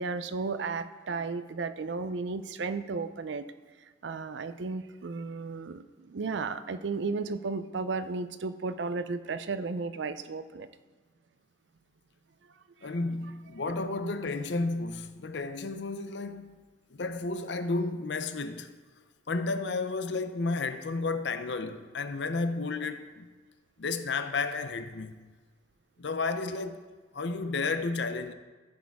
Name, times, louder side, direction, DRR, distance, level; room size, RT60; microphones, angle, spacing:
voice 1, 0.0-3.5 3.8-10.7, right 4 dB, 80° right, 0.5 m, -34 dB
voice 2, 12.8-18.7 19.3-23.3 23.8-25.2 26.0-26.8 27.1-28.3, left 3 dB, 75° left, 0.6 m, -32 dB
14.5 x 6.3 x 3.5 m
head